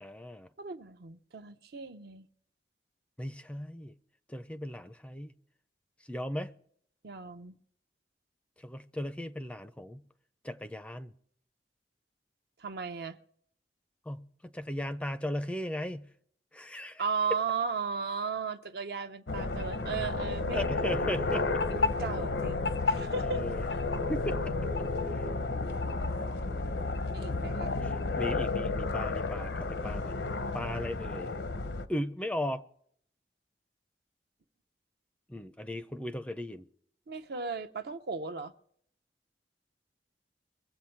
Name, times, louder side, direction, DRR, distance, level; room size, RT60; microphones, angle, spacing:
voice 1, 0.0-0.5 3.2-3.9 4.3-5.3 6.1-6.6 8.6-10.0 10.4-11.1 14.1-16.1 16.5-17.0 20.5-21.6 23.2-23.6 24.0-24.4 27.8-30.2 30.5-31.3 31.9-32.6 35.3-36.7, left 1 dB, 5° left, 0.4 m, -37 dB
voice 2, 0.6-2.3 7.0-7.6 12.6-13.2 17.0-20.7 21.7-23.4 27.1-27.7 37.1-38.5, right 5 dB, 60° right, 0.7 m, -36 dB
sound 1, 19.3-31.9, left 3 dB, 85° left, 0.8 m, -32 dB
23.0 x 7.8 x 4.4 m
head